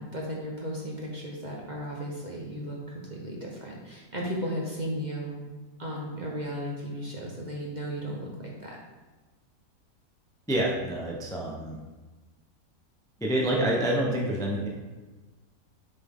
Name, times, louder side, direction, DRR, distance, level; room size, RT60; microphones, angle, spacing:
voice 1, 0.0-5.4 5.8-8.8, equal, 35° right, -2 dB, 0.8 m, -35 dB
voice 2, 10.5-11.8 13.2-14.7, right 1 dB, 5° left, -2 dB, 0.4 m, -27 dB
7.1 x 4.3 x 3.7 m, 1.2 s
omnidirectional pair, 1.7 m